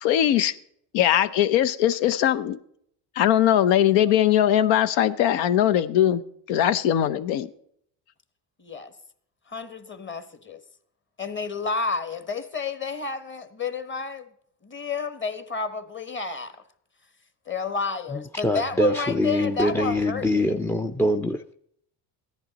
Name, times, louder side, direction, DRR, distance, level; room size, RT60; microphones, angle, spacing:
voice 1, 0.0-0.5 0.9-2.6 3.2-6.2 6.5-7.5, left 11 dB, 85° left, 0.9 m, -20 dB
voice 2, 8.6-8.9 9.5-10.6 11.2-14.3 14.6-16.6 17.5-20.5, left 4 dB, 25° left, 1.2 m, -31 dB
voice 3, 18.1-21.5, left 1 dB, 5° left, 0.4 m, -24 dB
14.5 x 10.5 x 4.1 m
cardioid pair, 100°, 44 cm